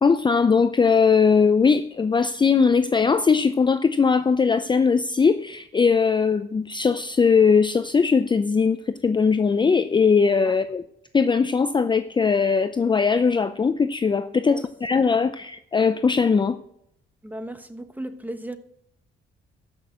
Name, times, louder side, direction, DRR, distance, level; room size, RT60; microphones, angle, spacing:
voice 1, 0.0-10.8 11.1-16.6, left 5 dB, 25° left, 0.5 m, -20 dB
voice 2, 17.2-18.6, right 1 dB, 10° right, 1.1 m, -35 dB
14.0 x 6.2 x 6.2 m
cardioid pair, 90°, 20 cm